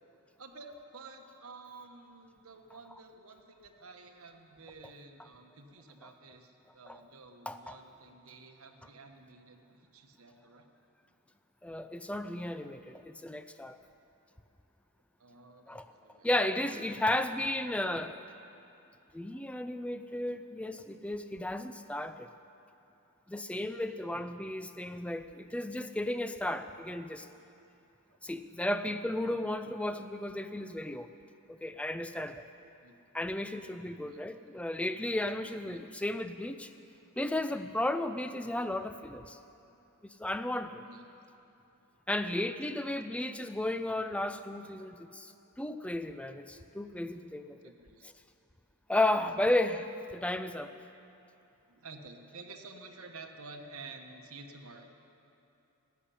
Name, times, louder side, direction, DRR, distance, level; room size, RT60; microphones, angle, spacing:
voice 1, 0.4-10.7 15.2-16.3 16.9-17.5 28.1-28.2 32.8-33.0 33.9-34.2 35.7-35.8 40.8-41.1 42.4-42.9 47.6-48.1 48.9-49.1 51.7-54.9, right 3 dB, 70° right, 4 dB, 1.2 m, -51 dB
voice 2, 7.5-7.8 11.6-13.8 15.7-15.9 16.2-18.1 19.1-22.3 23.3-27.3 28.2-31.1 31.5-32.5 33.1-36.7 37.2-39.4 40.2-40.8 42.1-47.6 48.0-48.1 48.9-50.7, left 1 dB, 5° left, 10 dB, 0.4 m, -34 dB
13.5 x 8.5 x 10.0 m, 2.8 s
head